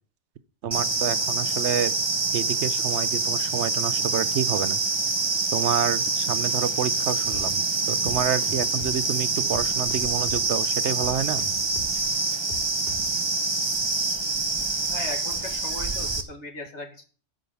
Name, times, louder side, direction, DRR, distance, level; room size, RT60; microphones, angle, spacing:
voice 1, 0.6-2.0 2.3-4.8 5.5-11.5, right 8 dB, 75° right, 15 dB, 1.0 m, -28 dB
sound 1, 0.7-16.2, right 3 dB, 25° right, 0.8 m, -26 dB
sound 2, 7.3-13.2, left 4 dB, 60° left, 3.0 m, -41 dB
voice 2, 14.9-17.1, left 2 dB, 75° left, 2 dB, 2.4 m, -37 dB
13.5 x 5.1 x 6.9 m, 0.42 s
omnidirectional pair, 1.2 m